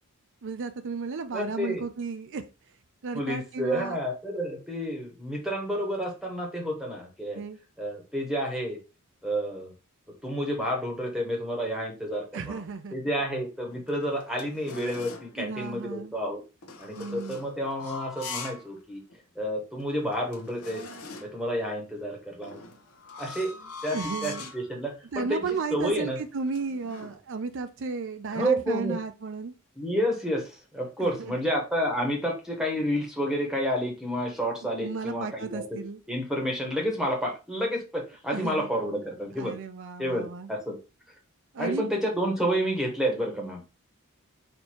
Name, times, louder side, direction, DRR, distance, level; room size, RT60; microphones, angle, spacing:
voice 1, 0.4-2.4 3.0-4.0 7.3-7.6 12.3-13.0 15.4-16.2 16.9-17.4 23.9-24.5 25.1-29.5 31.0-31.4 34.8-36.0 38.3-38.7 39.4-40.5 41.5-41.9, right 4 dB, 60° right, 9 dB, 0.5 m, -34 dB
voice 2, 1.3-1.8 3.1-7.4 7.8-8.8 9.2-9.7 10.2-12.6 12.9-16.4 16.8-19.0 19.3-20.8 21.2-22.6 23.2-23.5 23.8-25.4 25.7-26.2 28.3-29.0 29.7-35.8 36.1-39.6 40.0-40.8 41.6-43.7, equal, ahead, 0 dB, 1.0 m, -30 dB
sound 1, 13.7-15.3 16.6-18.7 19.1-19.2 19.8-19.9 20.1-21.4 22.4-24.7 25.3-25.6 25.8-27.2, left 3 dB, 85° left, 0.8 m, -42 dB
4.4 x 2.7 x 4.2 m, 0.30 s
head